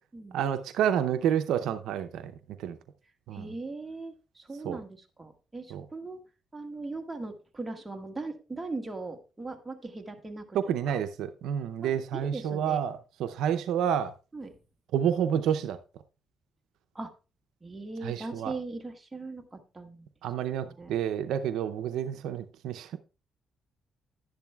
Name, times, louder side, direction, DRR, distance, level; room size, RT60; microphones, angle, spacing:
voice 1, 0.3-2.8 3.3-3.5 4.6-4.8 5.7-5.8 10.5-14.1 14.9-15.8 18.0-18.5 20.2-23.0, right 9 dB, 85° right, 0.6 m, -29 dB
voice 2, 3.3-6.2 6.5-11.0 11.8-12.8 14.3-14.6 16.9-17.1 17.6-20.1 20.5-21.0, right 3 dB, 20° right, 1.6 m, -39 dB
11.0 x 10.5 x 2.3 m
cardioid pair, 90°, 0 cm